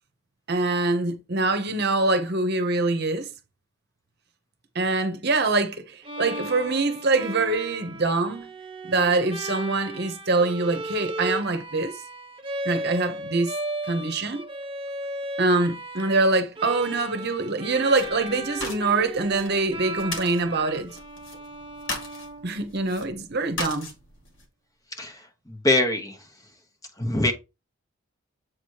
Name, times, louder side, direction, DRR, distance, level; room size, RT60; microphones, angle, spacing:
voice 1, 0.5-3.3 4.7-8.5 8.8-11.9 12.6-13.5 13.9-14.4 15.4-20.9 22.4-23.9, right 3 dB, 50° right, 0.9 m, -24 dB
Bowed string instrument, 6.0-23.0, right 1 dB, 25° right, 0.8 m, -36 dB
sound 1, 17.9-24.5, left 2 dB, 60° left, 2.0 m, -39 dB
voice 2, 25.5-26.2 27.0-27.3, left 2 dB, 15° left, 0.9 m, -23 dB
7.9 x 3.0 x 4.6 m
head